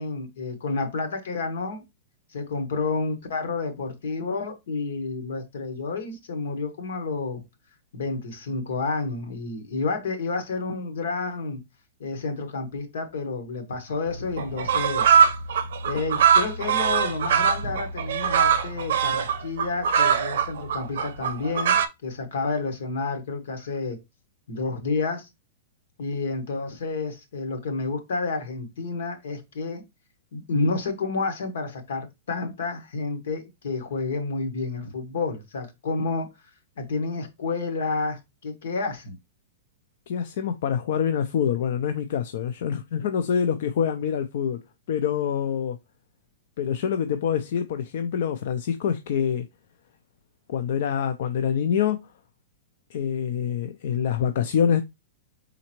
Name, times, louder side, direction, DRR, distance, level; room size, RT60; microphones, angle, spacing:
voice 1, 0.0-1.8 2.3-7.4 7.9-11.6 12.0-15.1 15.8-21.8 22.0-24.0 24.5-25.3 26.0-29.8 30.3-36.3 36.8-39.2, left 3 dB, 75° left, 1.3 m, -30 dB
sound 1, 14.1-14.2 14.4-21.9, right 7 dB, 65° right, 0.6 m, -22 dB
voice 2, 40.1-44.6 44.9-45.8 46.6-49.5 50.5-52.0 52.9-54.8, left 8 dB, 55° left, 0.4 m, -25 dB
4.2 x 3.8 x 2.9 m
supercardioid pair, 175°, 0 cm